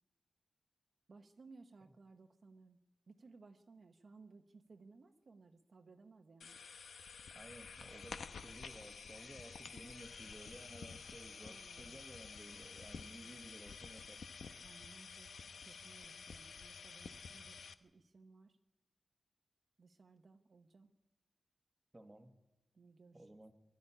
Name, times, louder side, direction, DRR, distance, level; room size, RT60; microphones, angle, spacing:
voice 1, 1.1-2.8 3.1-6.6 11.4-12.0 14.6-15.3 15.6-18.6 19.8-20.9 22.7-23.3, right 4 dB, 45° right, 0.9 m, -61 dB
sound 1, 6.4-17.7, left 5 dB, 80° left, 0.9 m, -51 dB
voice 2, 7.3-14.3 21.9-22.3 23.1-23.5, right 1 dB, 15° right, 1.2 m, -55 dB
21.5 x 13.0 x 9.9 m
wide cardioid pair, 180°, 0 cm